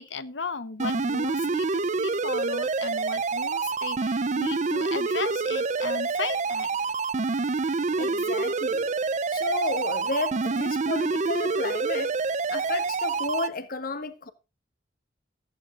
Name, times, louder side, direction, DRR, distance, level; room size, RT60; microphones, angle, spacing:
voice 1, 0.0-6.7, left 4 dB, 75° left, 1.0 m, -36 dB
sound 1, 0.8-13.5, right 4 dB, 40° right, 0.6 m, -27 dB
voice 2, 8.0-8.9 9.3-14.3, left 2 dB, 50° left, 1.6 m, -32 dB
14.5 x 14.5 x 2.5 m
head